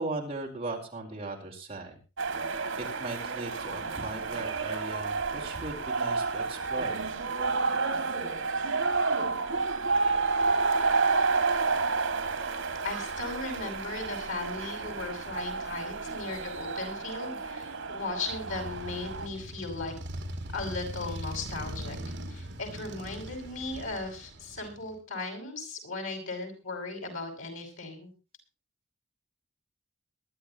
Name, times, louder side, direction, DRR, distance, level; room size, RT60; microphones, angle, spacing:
voice 1, 0.0-2.0 2.5-7.0, right 2 dB, 30° right, 0 dB, 4.4 m, -38 dB
sound 1, 2.2-19.3, right 4 dB, 80° right, 2.3 m, -30 dB
voice 2, 12.8-19.9 20.5-22.0 22.3-28.1, left 3 dB, 85° left, 5 dB, 6.3 m, -37 dB
Motorcycle, 18.3-24.9, right 1 dB, 60° right, 2.5 m, -40 dB
22.5 x 12.0 x 3.0 m, 0.31 s
head